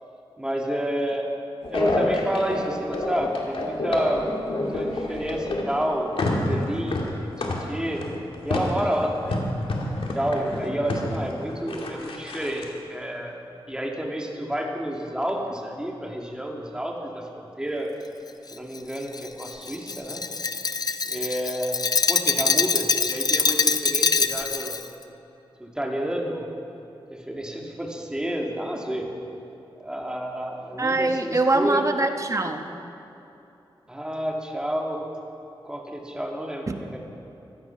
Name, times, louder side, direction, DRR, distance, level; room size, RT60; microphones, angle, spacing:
voice 1, 0.4-1.3 1.7-8.0 8.4-9.4 10.1-12.6 12.9-13.4 13.7-17.9 18.5-20.2 21.0-21.7 22.1-24.8 25.6-26.5 27.1-29.1 29.8-31.9 33.9-35.0 35.6-37.0, equal, 10° right, 0 dB, 2.2 m, -29 dB
sound 1, 1.6-5.8 6.1-12.7, left 2 dB, 75° left, 2.0 m, -28 dB
Glass, 18.5-24.9, left 4 dB, 45° left, 0.6 m, -24 dB
voice 2, 30.8-32.6 36.7-36.8, right 2 dB, 35° right, 6 dB, 1.1 m, -23 dB
16.0 x 12.0 x 5.8 m, 2.9 s
wide cardioid pair, 80°, 9 cm